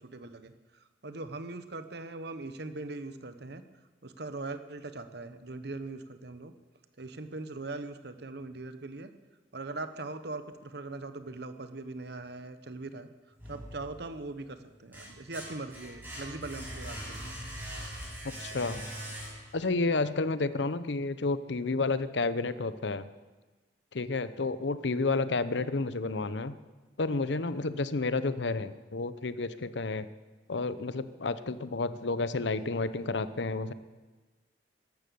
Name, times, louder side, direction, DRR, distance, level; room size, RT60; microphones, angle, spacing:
voice 1, 0.0-3.6 4.0-6.5 7.0-9.1 9.5-13.1 13.5-17.4, right 2 dB, 65° right, 10 dB, 1.1 m, -41 dB
sound 1, 13.4-14.2 14.7-19.7, equal, 10° right, 6.3 m, -42 dB
voice 2, 18.2-18.8 19.5-23.1 23.9-26.5 27.0-30.1 30.5-33.7, left 3 dB, 75° left, 14 dB, 0.8 m, -31 dB
14.0 x 12.0 x 7.0 m, 1.3 s
head